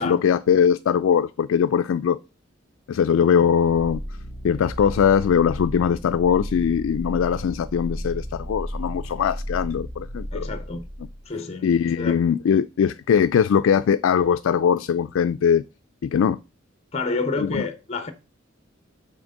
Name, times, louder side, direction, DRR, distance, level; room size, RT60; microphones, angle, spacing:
voice 1, 0.0-2.2 2.9-4.0 4.4-10.5 11.6-15.6 16.0-16.4 17.4-17.6, left 7 dB, 75° left, 0.3 m, -21 dB
sound 1, 3.5-11.3, equal, 85° right, 2.3 m, -34 dB
voice 2, 10.3-10.8 11.3-11.7 12.0-12.1 16.9-18.1, left 3 dB, 30° left, 0.7 m, -28 dB
6.1 x 4.3 x 6.4 m
head